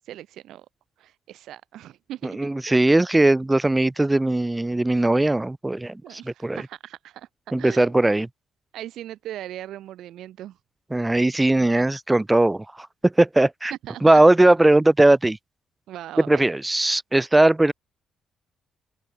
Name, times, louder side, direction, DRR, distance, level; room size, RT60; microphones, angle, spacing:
voice 1, 0.1-0.7 1.0-2.7 6.0-7.3 7.6-7.9 8.7-10.6 13.7-14.2 15.9-16.5, right 13 dB, 80° right, 1.1 m, -39 dB
voice 2, 2.2-6.6 7.5-8.3 10.9-13.7 14.0-15.4 16.2-17.7, right 2 dB, 15° right, 0.4 m, -19 dB
open air
cardioid pair, 90°, 0 cm